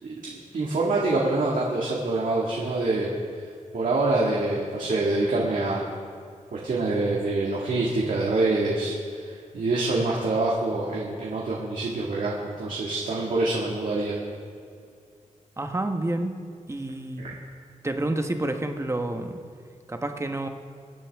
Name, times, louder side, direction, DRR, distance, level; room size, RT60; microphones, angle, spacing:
voice 1, 0.0-3.1 3.7-5.8 6.5-14.1 17.2-17.3, right 2 dB, 80° right, -4 dB, 2.0 m, -26 dB
voice 2, 15.6-16.4 16.7-17.2 17.8-19.4 19.9-20.5, right 2 dB, 20° right, 5 dB, 1.1 m, -29 dB
24.0 x 9.8 x 3.6 m, 2.3 s
wide cardioid pair, 105°, 13 cm